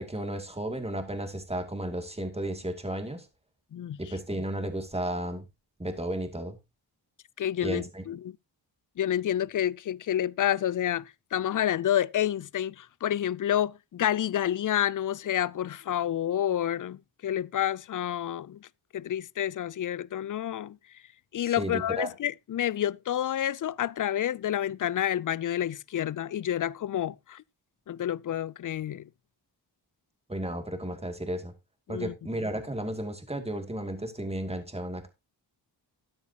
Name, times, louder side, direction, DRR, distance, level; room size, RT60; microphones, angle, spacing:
voice 1, 0.0-3.3 4.0-5.4 5.8-6.6 7.6-8.0 21.4-22.1 30.3-31.5 31.9-35.1, right 1 dB, 15° right, 2.4 m, -33 dB
voice 2, 7.4-8.3 9.0-18.7 18.9-20.8 21.3-27.4 27.9-29.1 31.9-32.1, left 11 dB, 45° left, 0.4 m, -29 dB
13.5 x 9.8 x 2.8 m
cardioid pair, 65°, 43 cm